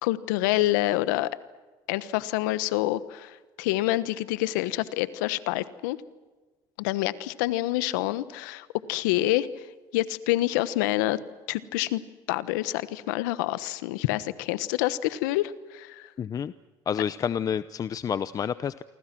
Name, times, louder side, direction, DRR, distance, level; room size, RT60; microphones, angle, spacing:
voice 1, 0.0-1.3 1.9-6.0 6.8-9.7 9.9-11.2 11.5-12.0 12.3-16.1, left 16 dB, 85° left, 16 dB, 1.2 m, -27 dB
voice 2, 16.2-16.5 16.9-18.8, left 8 dB, 40° left, 15 dB, 0.7 m, -29 dB
28.0 x 24.5 x 6.1 m, 1.2 s
supercardioid pair, 90°, 10 cm